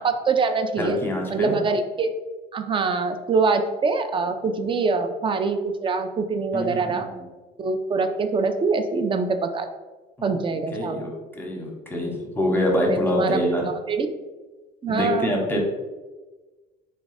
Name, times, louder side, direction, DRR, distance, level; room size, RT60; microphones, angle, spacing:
voice 1, 0.0-1.0 1.3-2.1 2.5-7.1 7.6-9.7 10.2-11.1 12.9-13.4 13.9-14.1 14.8-15.6, right 4 dB, 25° right, 8 dB, 0.4 m, -24 dB
voice 2, 0.8-1.6 6.5-7.2 10.2-10.3 10.7-13.6 14.9-15.6, left 1 dB, 10° left, 0 dB, 0.9 m, -25 dB
3.6 x 2.3 x 3.9 m, 1.2 s
supercardioid pair, 95°, 19 cm